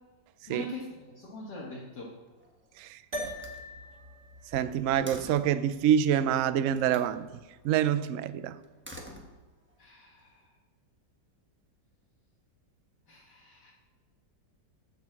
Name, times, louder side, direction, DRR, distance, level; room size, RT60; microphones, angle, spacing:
voice 1, 0.5-2.1 9.8-10.5 13.1-13.7, left 2 dB, 70° left, 2.2 m, -42 dB
Slam, 2.1-2.7 3.1-5.6 6.7-7.1 8.6-9.8, equal, 10° right, 1.0 m, -48 dB
sound 1, 3.1-7.7, equal, 60° right, 2.4 m, -44 dB
voice 2, 4.5-7.3 7.6-8.6, right 10 dB, 85° right, 0.7 m, -26 dB
11.0 x 5.2 x 7.4 m
omnidirectional pair, 2.0 m